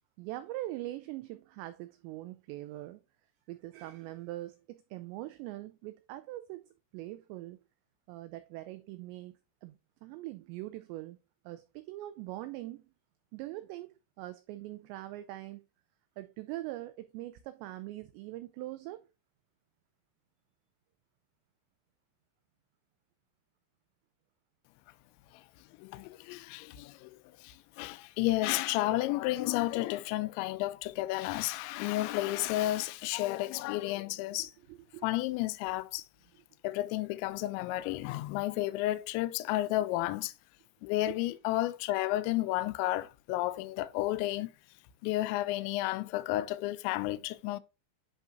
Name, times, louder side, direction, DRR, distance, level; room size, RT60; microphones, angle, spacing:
voice 1, 0.2-3.0 3.5-7.6 8.1-11.2 11.5-12.9 13.3-15.6 16.2-19.0 34.4-35.1 41.1-41.2, right 16 dB, 90° right, 2.5 m, -42 dB
voice 2, 25.8-34.5 35.0-36.0 36.6-40.3 40.8-44.5 45.0-47.6, left 16 dB, 85° left, 2.7 m, -32 dB
10.5 x 3.7 x 2.5 m
omnidirectional pair, 5.6 m